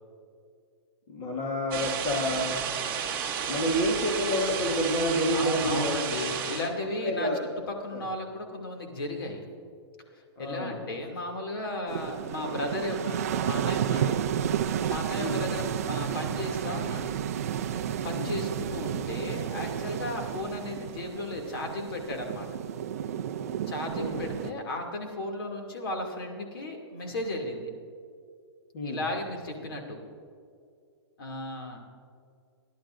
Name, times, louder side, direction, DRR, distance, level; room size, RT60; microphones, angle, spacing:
voice 1, 1.1-2.6 3.5-6.3 7.0-7.5 7.9-8.1 10.4-10.8 15.2-15.5 18.1-18.4 23.9-24.3 28.7-29.1, equal, 30° left, -2 dB, 1.4 m, -29 dB
sound 1, 1.7-6.7, right 7 dB, 15° right, 1.1 m, -32 dB
voice 2, 5.3-7.3 7.8-9.4 10.1-14.3 14.8-17.1 18.0-22.5 23.7-27.7 28.8-30.0 31.2-31.8, left 1 dB, 55° left, 2 dB, 2.6 m, -35 dB
sound 2, 11.9-24.5, right 9 dB, 35° right, 0.5 m, -31 dB
29.5 x 11.5 x 2.6 m, 2.3 s
hypercardioid pair, 180°, 15 cm